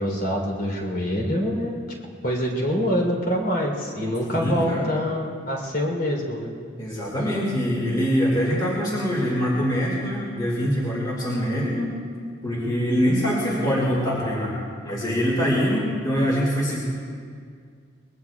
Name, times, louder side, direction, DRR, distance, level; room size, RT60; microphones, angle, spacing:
voice 1, 0.0-1.8 2.2-6.5, equal, 50° left, 0 dB, 3.6 m, -25 dB
voice 2, 4.2-4.9 6.8-11.9 12.4-14.6 14.8-16.8, equal, 20° left, -5 dB, 2.3 m, -24 dB
24.0 x 21.0 x 2.4 m, 2.1 s
head